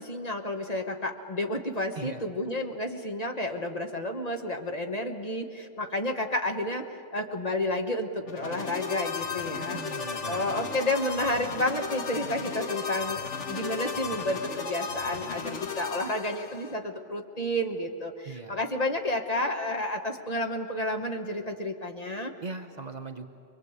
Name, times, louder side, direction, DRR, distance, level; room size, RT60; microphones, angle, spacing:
voice 1, 0.0-9.8 10.2-22.3, left 1 dB, 35° left, 4 dB, 1.3 m, -31 dB
sound 1, 8.2-16.8, left 5 dB, 70° left, 1.7 m, -35 dB
voice 2, 9.6-10.7 18.2-18.6 22.4-23.3, right 3 dB, 40° right, 6 dB, 0.9 m, -40 dB
24.0 x 22.0 x 8.1 m, 2.5 s
omnidirectional pair, 1.2 m